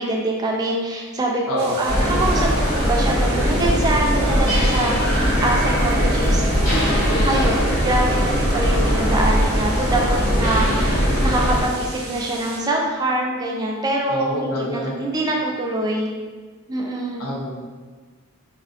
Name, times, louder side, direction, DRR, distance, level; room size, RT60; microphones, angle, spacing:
voice 1, 0.0-5.0 5.4-6.4 7.2-16.1 16.7-17.2, right 2 dB, 20° right, -1 dB, 0.3 m, -24 dB
voice 2, 1.5-1.8 7.1-7.5 14.1-15.0 17.2-17.5, left 1 dB, 90° left, -3 dB, 0.7 m, -27 dB
sound 1, 1.6-12.6, right 3 dB, 90° right, 0.6 m, -36 dB
sound 2, 1.9-11.6, equal, 40° left, 0.9 m, -20 dB
3.4 x 2.5 x 2.5 m, 1.4 s
head